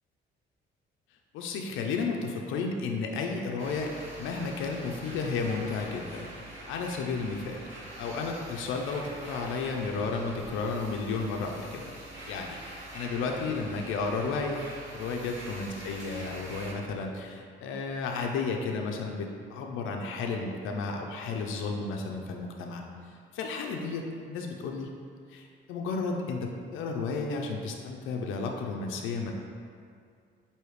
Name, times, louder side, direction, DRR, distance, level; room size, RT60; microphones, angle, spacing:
voice 1, 1.3-6.3 6.7-7.7 8.0-11.9 12.3-12.6 12.9-14.6 14.9-22.8 23.3-24.9 25.3-29.3, left 4 dB, 85° left, 2 dB, 0.4 m, -33 dB
sound 1, 3.6-16.7, right 1 dB, 75° right, 0.9 m, -45 dB
4.8 x 2.7 x 3.1 m, 2.3 s
cardioid pair, 90°, 20 cm